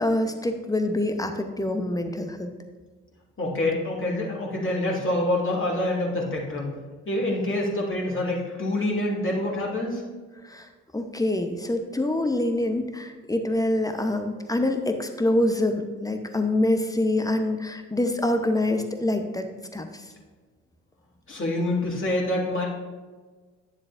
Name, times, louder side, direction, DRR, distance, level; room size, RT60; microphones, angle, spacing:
voice 1, 0.0-2.5 10.4-19.5 19.7-20.0, left 1 dB, 10° left, 6 dB, 0.9 m, -25 dB
voice 2, 3.4-6.7 7.1-10.0 21.3-22.7, left 1 dB, 35° left, -3 dB, 2.5 m, -26 dB
10.0 x 7.3 x 2.6 m, 1.4 s
hypercardioid pair, 50°, 37 cm